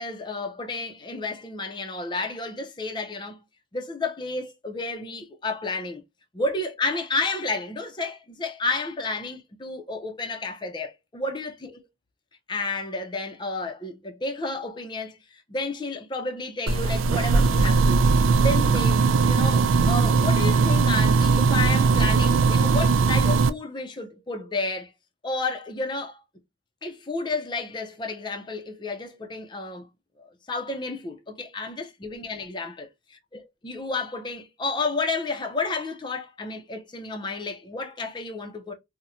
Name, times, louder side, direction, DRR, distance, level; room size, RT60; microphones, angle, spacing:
voice 1, 0.0-3.4 3.7-6.0 6.3-11.9 12.5-18.0 18.4-24.9 25.2-26.2 26.8-29.9 30.2-32.9 33.3-38.7, left 3 dB, 25° left, 0.4 m, -31 dB
sound 1, 16.7-23.5, right 4 dB, 90° right, 0.4 m, -19 dB
4.1 x 2.1 x 2.4 m
head